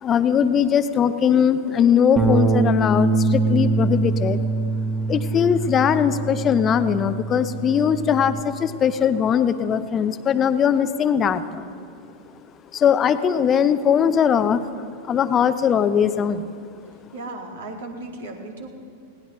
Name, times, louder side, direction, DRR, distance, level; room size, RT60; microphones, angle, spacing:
voice 1, 0.0-4.4 5.1-11.6 12.7-16.5, left 8 dB, 25° left, 12 dB, 0.7 m, -20 dB
Bass guitar, 2.2-8.4, right 3 dB, 20° right, 1.6 m, -23 dB
voice 2, 17.1-18.7, right 2 dB, 60° right, 2 dB, 2.1 m, -35 dB
20.0 x 17.5 x 3.1 m, 2.4 s
figure-of-eight pair, 90°, 0 cm